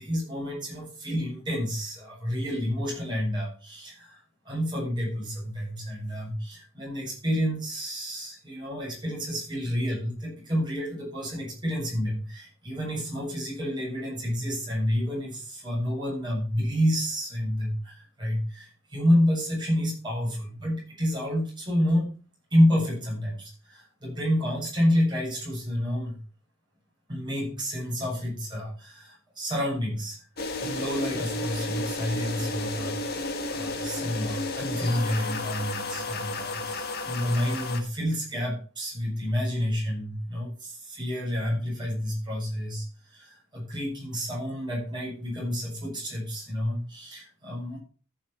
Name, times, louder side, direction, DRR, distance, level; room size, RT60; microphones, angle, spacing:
voice 1, 0.0-22.1 22.5-26.2 27.1-30.2 30.6-47.8, equal, 20° right, -3 dB, 7.5 m, -29 dB
sound 1, 30.4-37.8, left 2 dB, 50° left, 1.7 m, -32 dB
14.0 x 6.8 x 4.4 m, 0.37 s
head